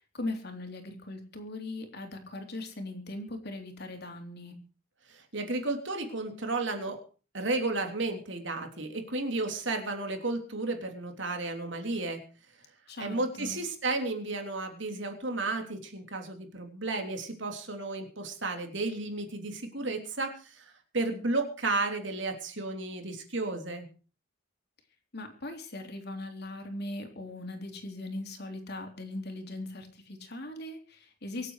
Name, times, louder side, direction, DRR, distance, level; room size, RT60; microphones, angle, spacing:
voice 1, 0.1-4.5 12.9-13.6 25.1-31.5, left 2 dB, 50° left, 4 dB, 3.6 m, -39 dB
voice 2, 5.1-7.0 7.3-12.2 13.0-23.9, right 2 dB, 60° right, 4 dB, 3.3 m, -33 dB
25.0 x 8.6 x 4.9 m, 0.38 s
head